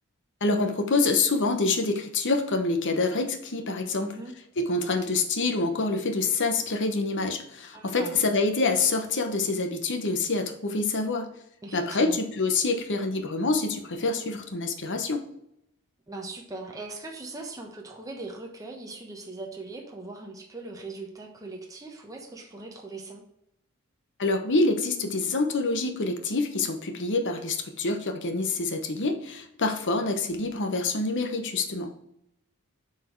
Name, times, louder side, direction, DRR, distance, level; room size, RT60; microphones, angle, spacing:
voice 1, 0.4-4.2 4.6-11.3 11.7-15.2 24.2-31.9, left 3 dB, 55° left, 6 dB, 1.1 m, -26 dB
voice 2, 3.9-4.3 7.7-8.2 11.6-12.2 16.1-23.2, right 2 dB, 15° right, 0 dB, 1.1 m, -40 dB
8.4 x 4.6 x 4.6 m, 0.78 s
head